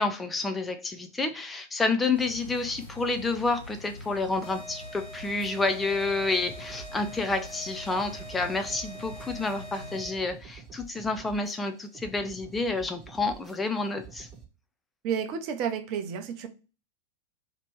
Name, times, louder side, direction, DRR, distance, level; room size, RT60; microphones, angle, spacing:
voice 1, 0.0-14.3, left 3 dB, 10° left, 8 dB, 0.4 m, -29 dB
sound 1, 2.1-10.0, left 1 dB, 80° left, 1.4 m, -45 dB
sound 2, 4.4-10.4, right 1 dB, 35° left, 0.8 m, -45 dB
sound 3, 6.4-14.4, right 6 dB, 15° right, 1.2 m, -49 dB
voice 2, 15.0-16.5, right 7 dB, 40° right, 7 dB, 0.6 m, -31 dB
3.0 x 2.9 x 4.6 m, 0.33 s
figure-of-eight pair, 90°, 0 cm